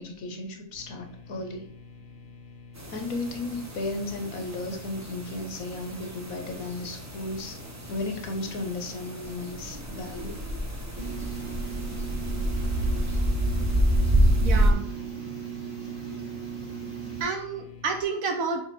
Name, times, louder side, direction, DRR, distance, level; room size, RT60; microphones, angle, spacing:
voice 1, 0.0-1.7 2.9-7.6 7.9-10.4 11.4-11.5, left 2 dB, 80° left, 5 dB, 1.4 m, -34 dB
sound 1, 0.8-18.0, left 5 dB, 55° left, 0.7 m, -48 dB
sound 2, 2.8-14.7, right 1 dB, 20° right, 0.4 m, -28 dB
sound 3, 11.0-17.2, right 8 dB, 50° right, 2.2 m, -37 dB
voice 2, 14.4-14.8 17.2-18.6, right 4 dB, 75° right, 5 dB, 1.1 m, -29 dB
7.0 x 3.4 x 4.0 m, 0.65 s
omnidirectional pair, 1.5 m